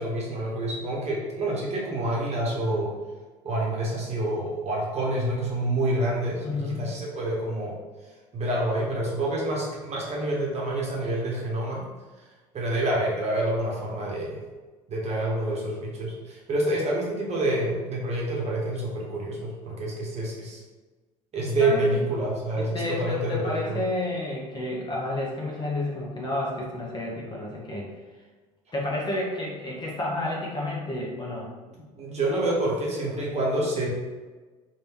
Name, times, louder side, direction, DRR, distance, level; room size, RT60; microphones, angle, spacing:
voice 1, 0.0-2.9 3.4-7.7 8.3-11.8 12.5-14.4 14.9-20.6 21.3-23.8 31.7-33.9, right 1 dB, 35° right, -4 dB, 1.1 m, -27 dB
voice 2, 6.4-6.8 21.6-21.9 22.5-27.9 28.7-31.5, left 2 dB, 25° left, -3 dB, 1.0 m, -30 dB
3.3 x 2.8 x 3.0 m, 1.3 s
figure-of-eight pair, 65°, 19 cm